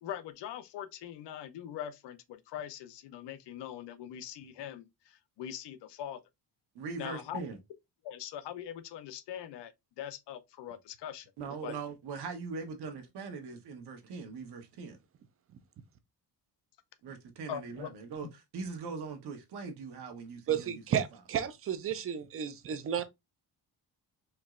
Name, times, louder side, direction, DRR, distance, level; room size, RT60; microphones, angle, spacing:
voice 1, 0.0-6.2 7.0-7.4 8.0-11.3 11.6-11.8 17.5-17.9, left 10 dB, 85° left, 0.6 m, -42 dB
voice 2, 6.7-7.6 11.4-15.0 17.0-20.8, right 4 dB, 70° right, 1.1 m, -41 dB
voice 3, 20.5-23.0, right 9 dB, 35° right, 0.4 m, -32 dB
4.4 x 3.0 x 2.4 m
cardioid pair, 180°, 41 cm